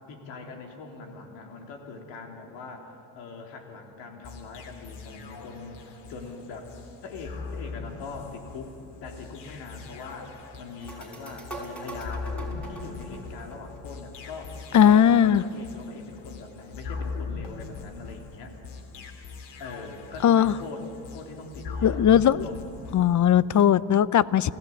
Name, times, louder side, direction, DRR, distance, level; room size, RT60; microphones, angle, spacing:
voice 1, 0.1-6.7 7.0-8.7 9.0-18.6 19.6-22.7, left 4 dB, 85° left, 2 dB, 3.7 m, -42 dB
sound 1, 4.2-23.4, left 4 dB, 70° left, 3.0 m, -40 dB
sound 2, 10.8-14.3, right 1 dB, 5° left, 5.5 m, -41 dB
voice 2, 14.7-15.4 20.2-20.5 21.8-22.4 22.9-24.5, left 9 dB, 45° left, 18 dB, 0.8 m, -18 dB
29.0 x 16.5 x 8.7 m, 2.5 s
supercardioid pair, 85°, 42 cm